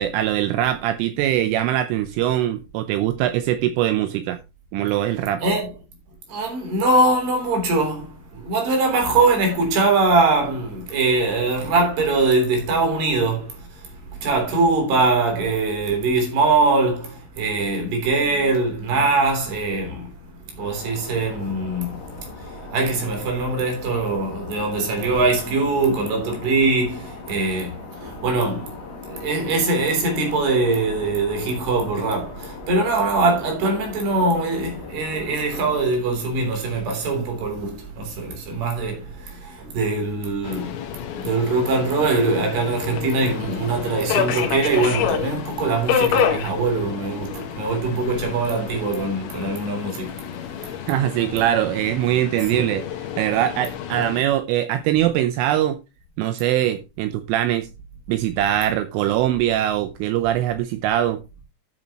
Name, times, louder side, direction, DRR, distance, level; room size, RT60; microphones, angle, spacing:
voice 1, 0.0-4.4 4.7-5.4 50.9-55.8 56.2-57.7 58.1-61.2, right 12 dB, 80° right, 3.1 m, -22 dB
voice 2, 6.3-13.7 14.1-20.1 20.6-22.0 22.5-50.2 50.6-50.8 52.5-52.6, right 3 dB, 55° right, 5.0 m, -22 dB
sound 1, 20.6-35.9, left 4 dB, 55° left, 3.5 m, -39 dB
Subway metro underground, 40.4-54.2, left 8 dB, 80° left, 4.0 m, -29 dB
13.5 x 7.4 x 2.9 m
omnidirectional pair, 6.0 m